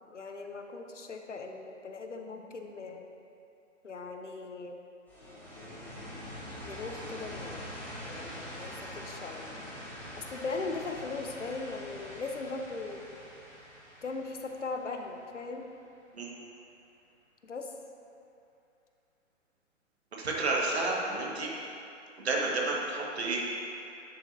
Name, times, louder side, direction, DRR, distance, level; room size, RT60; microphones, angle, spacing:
voice 1, 0.0-3.0 3.8-4.8 6.6-7.7 8.0-9.6 10.2-13.1 14.0-15.7 17.4-17.7, left 3 dB, 70° left, 4 dB, 0.8 m, -39 dB
sound 1, 5.1-15.8, equal, 5° left, 0.8 m, -44 dB
voice 2, 20.2-21.5 22.2-23.4, right 3 dB, 55° right, -2 dB, 1.6 m, -30 dB
10.5 x 6.7 x 2.7 m, 2.6 s
figure-of-eight pair, 130°, 37 cm